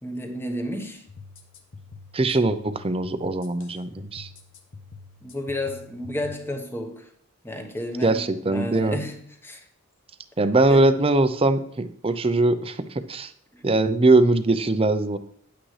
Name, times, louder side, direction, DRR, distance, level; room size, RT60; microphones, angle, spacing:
voice 1, 0.0-1.1 5.2-7.1 7.4-9.6 10.7-10.9 13.5-13.6, left 1 dB, 10° left, 3 dB, 1.1 m, -32 dB
sound 1, 1.1-6.3, left 4 dB, 55° left, 1.1 m, -45 dB
voice 2, 2.1-4.3 8.0-9.0 10.4-13.3 13.6-15.2, right 2 dB, 25° right, 11 dB, 0.6 m, -21 dB
10.0 x 8.7 x 3.2 m, 0.66 s
head